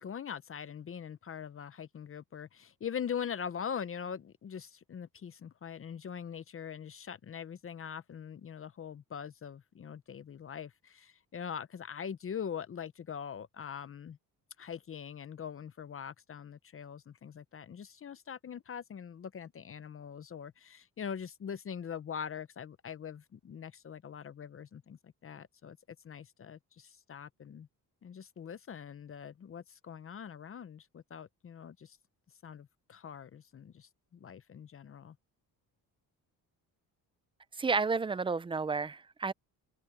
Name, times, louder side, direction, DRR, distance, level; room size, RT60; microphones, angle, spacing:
voice 1, 0.0-14.2 14.6-25.8 26.0-27.7 28.0-32.0 32.4-33.9 34.2-35.1, left 7 dB, 35° left, 0.7 m, -42 dB
voice 2, 37.5-39.3, right 4 dB, 15° right, 0.4 m, -31 dB
cardioid pair, 115°, 37 cm